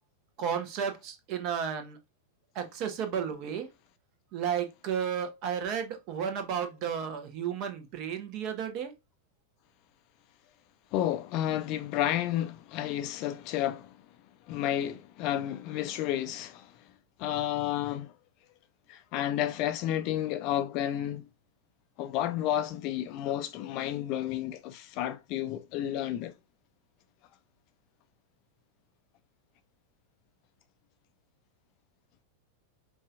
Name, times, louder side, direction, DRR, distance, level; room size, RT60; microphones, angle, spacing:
voice 1, 0.4-2.0 2.5-3.7 4.3-8.9, right 8 dB, 40° right, 1.0 m, -33 dB
voice 2, 10.9-14.0 14.5-16.7 17.2-18.1 18.9-21.3 22.0-26.3, left 12 dB, 40° left, 0.5 m, -31 dB
5.3 x 2.5 x 2.4 m
figure-of-eight pair, 90°, 0 cm